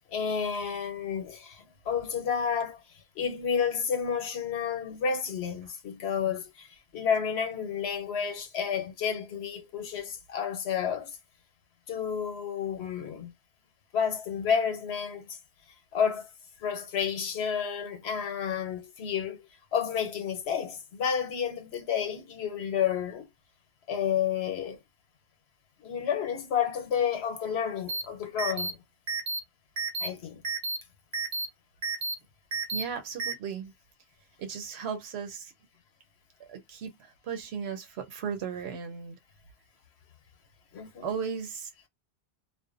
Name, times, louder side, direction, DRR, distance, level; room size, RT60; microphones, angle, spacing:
voice 1, 0.1-2.8 3.2-11.1 11.9-13.3 13.9-15.4 15.9-16.3 16.6-23.3 23.9-24.8 25.8-28.8 30.0-30.4 40.7-41.1, left 7 dB, 90° left, 1.0 m, -30 dB
sound 1, 27.9-28.0 28.4-28.7 29.1-29.4 29.8-30.1 30.4-30.8 31.1-31.5 31.8-32.1 32.5-32.8 33.2-33.3, right 3 dB, 60° right, 0.7 m, -31 dB
voice 2, 32.7-33.7 34.4-35.5 36.4-39.2 41.0-41.7, right 6 dB, 85° right, 1.0 m, -36 dB
2.5 x 2.2 x 2.5 m
omnidirectional pair, 1.1 m